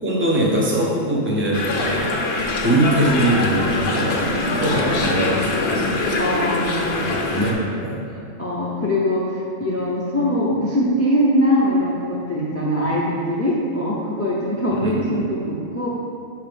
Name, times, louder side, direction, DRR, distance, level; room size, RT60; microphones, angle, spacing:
voice 1, 0.0-2.1 2.6-6.0 7.0-8.1 14.7-15.2, right 1 dB, 10° right, -4 dB, 0.8 m, -22 dB
sound 1, 1.5-7.5, left 2 dB, 60° left, 0.9 m, -23 dB
voice 2, 6.2-7.3 8.4-15.9, equal, 15° left, -5 dB, 0.5 m, -22 dB
6.6 x 3.0 x 5.1 m, 2.4 s
omnidirectional pair, 1.3 m